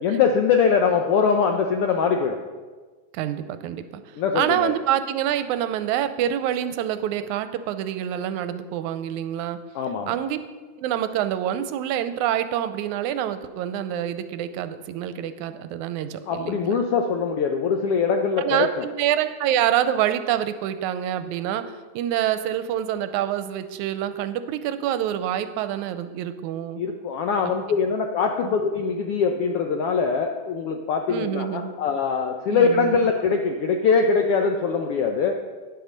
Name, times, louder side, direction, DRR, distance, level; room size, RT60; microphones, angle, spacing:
voice 1, 0.0-2.4 4.2-4.7 9.7-10.2 16.3-18.8 26.8-35.4, left 5 dB, 80° left, 4 dB, 1.3 m, -22 dB
voice 2, 3.1-9.6 10.1-10.4 10.8-16.8 18.4-26.8 28.4-28.6 31.1-31.8 32.5-33.0, right 11 dB, 90° right, 11 dB, 2.0 m, -26 dB
10.0 x 8.1 x 6.3 m, 1.4 s
omnidirectional pair, 3.4 m